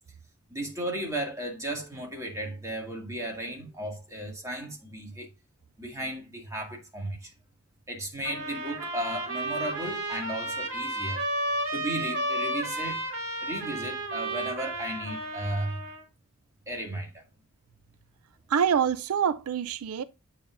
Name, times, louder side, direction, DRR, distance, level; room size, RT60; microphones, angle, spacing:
voice 1, 0.5-5.3 5.8-7.3 7.9-11.2 11.7-13.0 13.4-15.8 16.7-17.2, right 1 dB, 15° right, 2.1 m, -35 dB
sound 1, 8.2-16.0, right 1 dB, 65° right, 2.5 m, -32 dB
voice 2, 18.5-20.0, right 7 dB, 80° right, 0.4 m, -25 dB
8.5 x 5.6 x 2.5 m
head